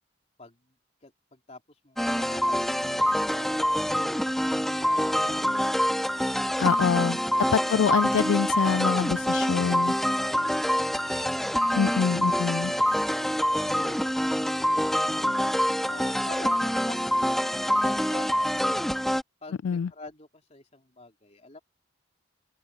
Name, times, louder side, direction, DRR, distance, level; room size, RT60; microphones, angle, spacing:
voice 1, 0.4-0.7 1.0-3.9 4.6-6.0 7.1-7.7 10.2-11.2 12.0-12.1 12.6-12.7 13.0-14.8 15.7-17.2 17.6-18.9 19.4-21.6, left 2 dB, 35° left, 3.3 m, -47 dB
sound 1, 2.0-19.2, equal, ahead, 1.5 m, -26 dB
voice 2, 6.6-7.2 7.5-9.9 11.8-12.7 19.6-19.9, left 7 dB, 85° left, 0.3 m, -25 dB
open air
head